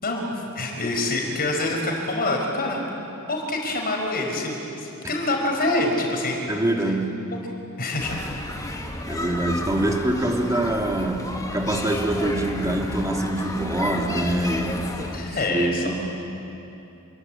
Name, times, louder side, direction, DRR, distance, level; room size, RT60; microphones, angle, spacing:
voice 1, 0.0-2.8 3.3-6.5 7.8-8.2 15.1-15.8, left 2 dB, 40° left, 1 dB, 5.2 m, -26 dB
voice 2, 6.5-7.2 9.1-16.1, right 1 dB, 15° right, 1 dB, 2.4 m, -25 dB
sound 1, 8.0-15.2, left 1 dB, 15° left, 2.2 m, -32 dB
28.0 x 22.0 x 8.9 m, 2.9 s
head